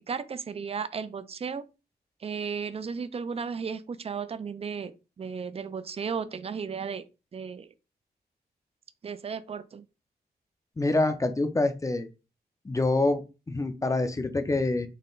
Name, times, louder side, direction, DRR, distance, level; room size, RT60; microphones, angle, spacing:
voice 1, 0.0-1.7 2.2-7.0 7.3-7.7 9.0-9.8, right 6 dB, 35° right, 0.4 m, -34 dB
voice 2, 10.8-12.1 12.6-14.9, left 2 dB, 20° left, 0.5 m, -26 dB
3.9 x 2.1 x 3.8 m
cardioid pair, 80°, 17 cm